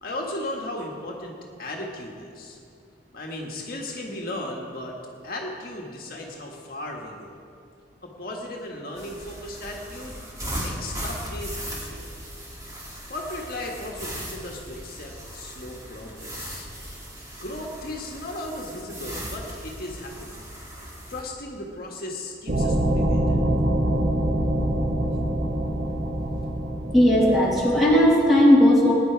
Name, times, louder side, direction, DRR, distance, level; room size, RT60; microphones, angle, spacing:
voice 1, 0.0-2.6 3.1-4.9 5.2-7.4 8.0-10.2 10.5-12.1 13.1-16.7 17.4-20.4 21.1-23.4, left 1 dB, 55° left, -1 dB, 1.7 m, -36 dB
sound 1, 9.0-21.2, equal, 20° right, 2.3 m, -37 dB
sound 2, 22.5-28.1, right 1 dB, 45° right, 1.0 m, -25 dB
voice 2, 26.9-28.9, equal, ahead, -6 dB, 2.7 m, -17 dB
19.0 x 10.0 x 4.7 m, 2.5 s
head